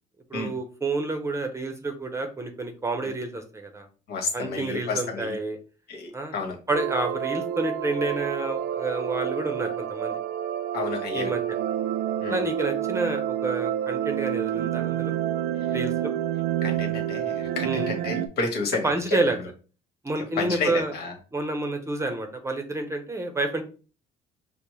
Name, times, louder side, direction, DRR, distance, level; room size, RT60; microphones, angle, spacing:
voice 1, 0.3-3.9 4.3-5.6 6.1-6.3 6.7-10.2 11.1-11.4 12.3-15.1 15.7-16.1 17.6-17.9 18.8-19.4 20.0-20.9 21.3-23.6, right 2 dB, 15° right, 5 dB, 0.7 m, -29 dB
voice 2, 4.1-5.3 5.9-6.5 10.7-11.3 12.2-12.4 16.6-19.2 20.4-21.1, left 4 dB, 70° left, 1 dB, 1.3 m, -30 dB
sound 1, 6.7-18.3, right 11 dB, 85° right, 0.4 m, -28 dB
5.1 x 2.1 x 3.0 m, 0.36 s
cardioid pair, 110°, 17 cm